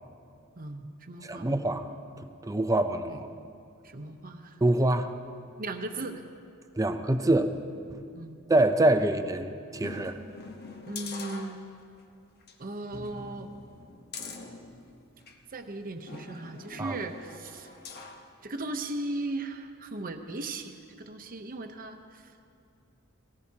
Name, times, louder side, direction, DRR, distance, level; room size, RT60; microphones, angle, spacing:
voice 1, 0.6-1.6 3.1-3.2 3.8-4.6 5.6-6.2 8.1-8.4 10.8-11.6 12.6-13.5 15.5-17.7 18.4-22.3, right 2 dB, 40° right, 6 dB, 0.8 m, -37 dB
voice 2, 1.2-1.9 2.2-3.3 4.6-5.1 6.8-7.5 7.9-8.0 8.5-10.2 16.8-17.0, right 1 dB, 15° right, 8 dB, 0.5 m, -25 dB
sound 1, 9.8-12.0 12.4-12.5 12.9-15.4 16.1-18.3 18.7-18.8, left 3 dB, 50° left, 1.0 m, -44 dB
18.0 x 18.0 x 2.9 m, 2.5 s
head